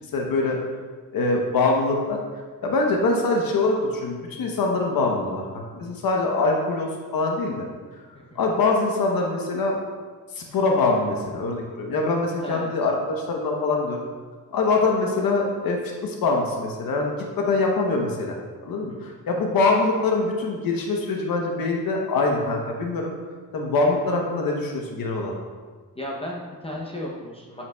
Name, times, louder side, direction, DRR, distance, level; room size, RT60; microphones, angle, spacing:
voice 1, 0.1-0.6 1.1-2.2 2.6-7.6 8.4-9.7 10.3-14.0 14.5-18.4 18.6-23.1 23.5-25.3, left 3 dB, 75° left, 1 dB, 0.9 m, -24 dB
voice 2, 25.9-27.6, left 1 dB, 15° left, -3 dB, 0.6 m, -34 dB
7.7 x 5.7 x 2.3 m, 1.5 s
wide cardioid pair, 145°, 35 cm